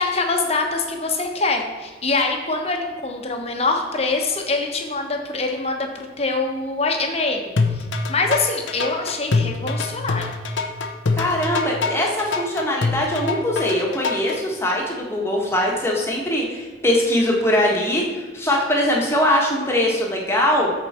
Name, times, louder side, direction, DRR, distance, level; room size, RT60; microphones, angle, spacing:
voice 1, 0.0-10.3, left 3 dB, 35° left, 3 dB, 1.1 m, -24 dB
sound 1, 7.6-14.4, left 3 dB, 85° left, 0.8 m, -24 dB
voice 2, 11.2-20.7, left 1 dB, 15° left, -2 dB, 1.6 m, -21 dB
13.5 x 4.9 x 4.4 m, 1.4 s
head